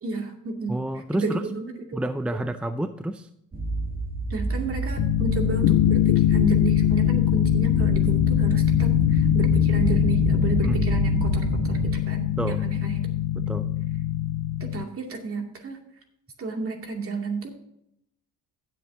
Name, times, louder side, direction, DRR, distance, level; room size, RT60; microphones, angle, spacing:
voice 1, 0.0-0.7 1.1-2.0 2.3-2.4 4.3-13.2 14.6-15.8 16.4-17.5, right 4 dB, 45° right, 2 dB, 2.5 m, -32 dB
voice 2, 0.7-1.4 1.9-3.3 10.6-10.8 12.4-12.6 13.3-13.7, right 1 dB, 5° right, 9 dB, 0.5 m, -29 dB
sound 1, 3.5-11.9, right 3 dB, 30° right, 1.3 m, -28 dB
sound 2, 5.0-14.8, left 14 dB, 80° left, 0.5 m, -22 dB
16.0 x 7.7 x 2.8 m, 0.76 s
cardioid pair, 90°, 30 cm